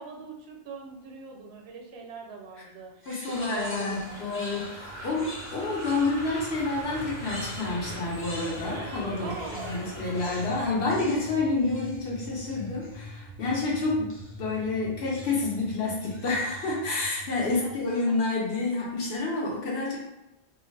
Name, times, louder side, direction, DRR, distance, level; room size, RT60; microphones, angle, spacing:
voice 1, 0.0-4.0 9.2-9.8 17.4-17.7 18.1-18.2, right 4 dB, 90° right, 1 dB, 0.9 m, -41 dB
sound 1, 3.0-6.4 6.9-8.9 9.2-13.1 14.1-14.5 15.1-15.6 16.0-16.8, left 1 dB, 15° left, 0.6 m, -46 dB
voice 2, 3.1-20.0, left 3 dB, 90° left, -4 dB, 0.9 m, -29 dB
sound 2, 3.3-10.5, equal, 45° left, 1.3 m, -41 dB
sound 3, 4.6-17.8, equal, 45° right, 0.8 m, -44 dB
2.5 x 2.3 x 3.1 m, 0.91 s
omnidirectional pair, 1.0 m